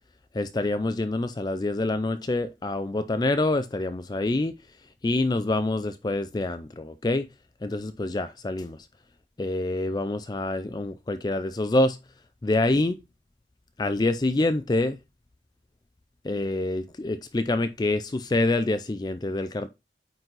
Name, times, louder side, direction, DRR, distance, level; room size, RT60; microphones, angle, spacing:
voice 1, 0.4-4.5 5.0-7.3 7.6-8.8 9.4-12.0 12.4-13.0 13.8-15.0 16.3-19.7, left 2 dB, 25° left, 0.4 m, -26 dB
9.0 x 4.0 x 3.9 m
head